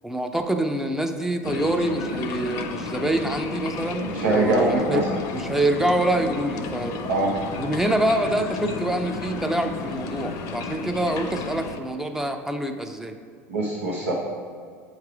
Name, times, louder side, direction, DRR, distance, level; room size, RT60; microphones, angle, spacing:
voice 1, 0.0-5.0 5.3-7.0 7.6-13.1, right 1 dB, 5° right, 5 dB, 0.5 m, -26 dB
sound 1, 1.4-11.8, left 3 dB, 55° left, 0.6 m, -32 dB
voice 2, 4.1-5.0 7.1-7.3 13.5-14.1, right 2 dB, 90° right, -6 dB, 0.8 m, -23 dB
7.7 x 3.2 x 4.8 m, 2.2 s
hypercardioid pair, 85°, 8 cm